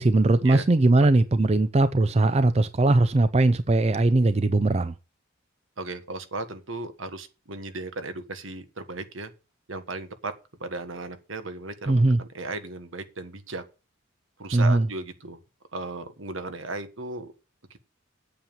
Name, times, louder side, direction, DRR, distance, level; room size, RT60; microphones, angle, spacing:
voice 1, 0.0-4.9 11.9-12.2 14.5-14.9, right 2 dB, 30° right, 0.4 m, -20 dB
voice 2, 5.8-9.3 9.7-10.3 10.6-13.6 14.4-15.4 15.7-17.3, right 3 dB, 75° right, 1.5 m, -36 dB
8.6 x 7.3 x 7.3 m
head